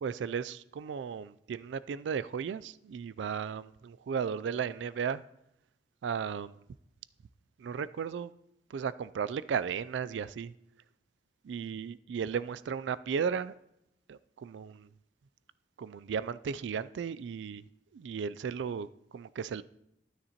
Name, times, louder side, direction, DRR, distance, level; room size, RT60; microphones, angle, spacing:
voice 1, 0.0-5.2 6.0-6.6 7.6-8.3 8.7-10.5 11.4-13.5 14.1-14.9 15.8-17.6 17.9-19.6, right 6 dB, 85° right, 0.3 m, -35 dB
12.5 x 9.6 x 2.9 m
head